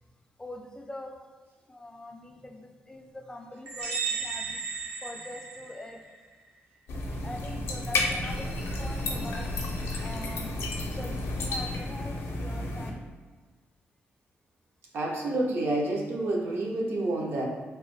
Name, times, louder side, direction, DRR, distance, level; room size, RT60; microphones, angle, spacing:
voice 1, 0.4-1.1 1.7-4.6 5.0-6.0 7.2-9.5 10.0-10.5 11.0-13.1, left 1 dB, 15° left, 2 dB, 0.3 m, -43 dB
sound 1, 3.7-6.2, right 5 dB, 75° right, 1.0 m, -34 dB
sound 2, 6.9-12.9, left 2 dB, 80° left, 0.5 m, -32 dB
voice 2, 14.9-17.4, right 2 dB, 60° right, -2 dB, 0.6 m, -28 dB
3.0 x 2.0 x 3.1 m, 1.4 s
cardioid pair, 100°, 4 cm